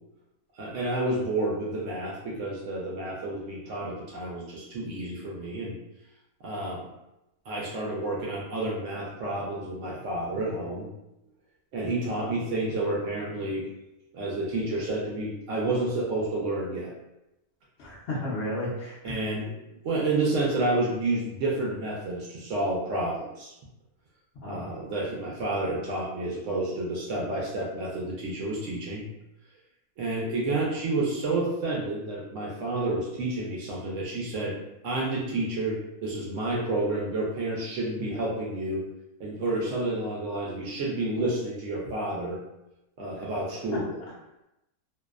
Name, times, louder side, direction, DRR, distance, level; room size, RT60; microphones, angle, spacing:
voice 1, 0.5-5.8 6.4-6.9 7.5-10.9 11.7-13.7 14.1-16.9 19.0-23.5 24.5-29.0 30.0-34.6 34.8-38.9 39.2-42.4 43.0-43.9, right 2 dB, 65° right, -3 dB, 0.8 m, -30 dB
voice 2, 17.8-19.2 24.3-24.7 43.2-43.3 43.7-43.8, left 1 dB, 65° left, -7 dB, 0.7 m, -33 dB
2.6 x 2.0 x 2.3 m, 0.91 s
omnidirectional pair, 1.6 m